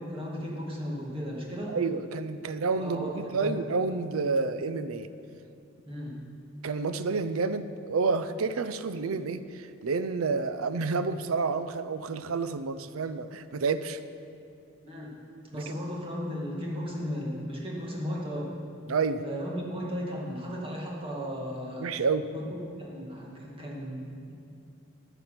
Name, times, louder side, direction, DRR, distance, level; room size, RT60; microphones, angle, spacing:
voice 1, 0.0-1.8 2.8-3.6 5.9-6.2 14.8-15.2 15.5-18.5 19.2-22.0 22.3-22.4 22.8-24.3, equal, 25° right, -3 dB, 2.0 m, -35 dB
voice 2, 1.7-5.1 6.6-14.0 15.5-15.7 18.9-19.2 21.8-22.3, right 4 dB, 80° right, 12 dB, 0.5 m, -29 dB
13.0 x 7.1 x 5.8 m, 2.5 s
head